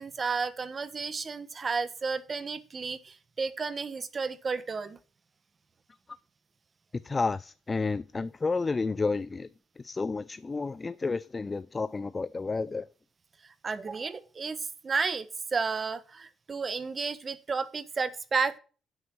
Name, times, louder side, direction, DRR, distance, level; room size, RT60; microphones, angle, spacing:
voice 1, 0.0-5.0 13.6-15.3 15.5-18.6, right 5 dB, 35° right, 1.3 m, -32 dB
voice 2, 7.0-9.5 9.8-12.9, left 4 dB, 30° left, 0.4 m, -31 dB
10.5 x 8.1 x 6.2 m
cardioid pair, 90°, 0 cm